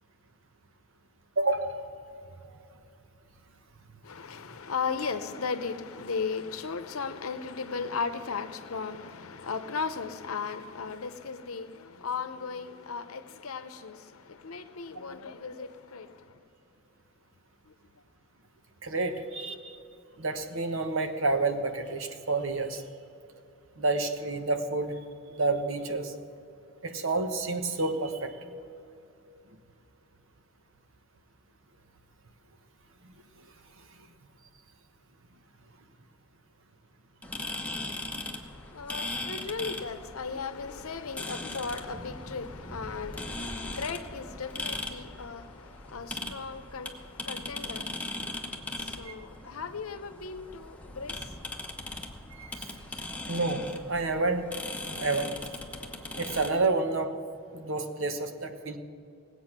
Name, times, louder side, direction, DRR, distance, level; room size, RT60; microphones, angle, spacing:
voice 1, 1.4-1.8 18.8-19.8 20.2-22.8 23.8-25.0 25.3-26.1 26.8-28.4 33.4-33.5 49.0-49.1 52.3-52.7 53.3-54.5 54.9-55.3 56.2-57.1 57.5-58.8, right 3 dB, 65° right, 1.1 m, -29 dB
voice 2, 4.0-16.1 38.7-48.2 48.8-51.2, left 5 dB, 80° left, 0.8 m, -36 dB
sound 1, 37.2-56.5, left 2 dB, 5° left, 0.9 m, -39 dB
18.5 x 8.3 x 6.0 m
head